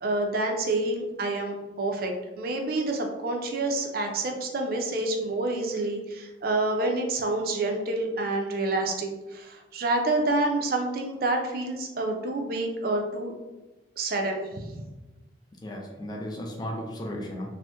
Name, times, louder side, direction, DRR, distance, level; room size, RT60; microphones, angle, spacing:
voice 1, 0.0-13.3 14.0-14.8, right 2 dB, 50° right, 3 dB, 0.4 m, -28 dB
voice 2, 15.6-17.5, equal, 20° left, 0 dB, 0.4 m, -35 dB
2.8 x 2.0 x 3.4 m, 1.1 s
head